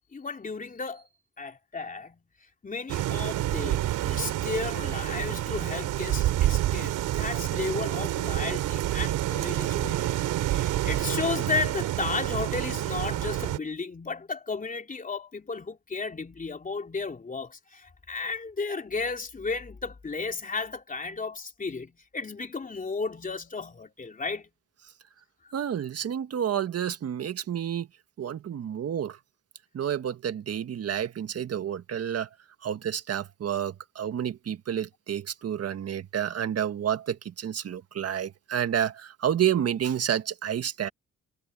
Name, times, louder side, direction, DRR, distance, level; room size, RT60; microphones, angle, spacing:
voice 1, 0.1-1.1 1.4-2.2 2.6-24.5 25.4-25.5, left 4 dB, 25° left, 3.0 m, -34 dB
sound 1, 2.9-13.6, right 14 dB, 90° right, 3.7 m, -28 dB
voice 2, 25.5-27.9 28.2-29.2 29.7-32.3 32.6-40.9, right 9 dB, 55° right, 1.6 m, -29 dB
cardioid pair, 90°, 30 cm